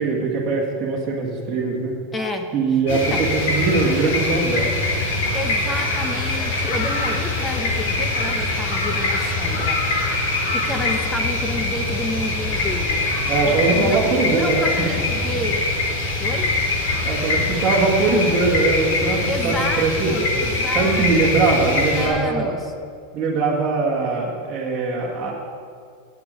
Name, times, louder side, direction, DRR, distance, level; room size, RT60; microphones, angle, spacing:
voice 1, 0.0-1.9 2.5-4.7 13.3-15.0 17.0-20.1 20.7-22.5 23.1-25.3, right 3 dB, 20° right, -5 dB, 1.8 m, -21 dB
voice 2, 2.1-2.5 2.9-3.3 5.3-9.8 10.3-13.1 13.4-15.7 16.2-16.5 19.3-21.1 21.3-22.7, left 2 dB, 10° left, 5 dB, 0.7 m, -30 dB
sound 1, 2.9-22.1, left 2 dB, 60° left, 3.5 m, -23 dB
8.3 x 8.3 x 8.9 m, 2.3 s
supercardioid pair, 175°, 0 cm